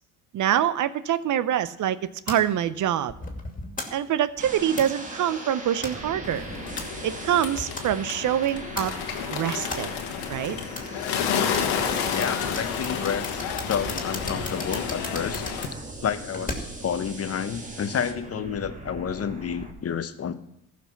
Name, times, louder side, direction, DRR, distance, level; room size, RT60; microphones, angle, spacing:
voice 1, 0.3-2.0 2.3-3.1 3.9-6.4 7.0-8.9 9.3-9.9 10.3-10.6, right 10 dB, 55° right, 15 dB, 0.6 m, -25 dB
sound 1, 2.3-16.9, left 2 dB, 20° left, 2.5 m, -39 dB
sound 2, 4.4-19.7, right 2 dB, 20° right, 1.9 m, -40 dB
Bird, 6.2-15.7, left 7 dB, 85° left, 1.4 m, -30 dB
voice 2, 12.1-15.4 16.0-20.3, left 7 dB, 40° left, 11 dB, 0.9 m, -30 dB
14.5 x 5.9 x 5.8 m, 0.82 s
supercardioid pair, 70°, 37 cm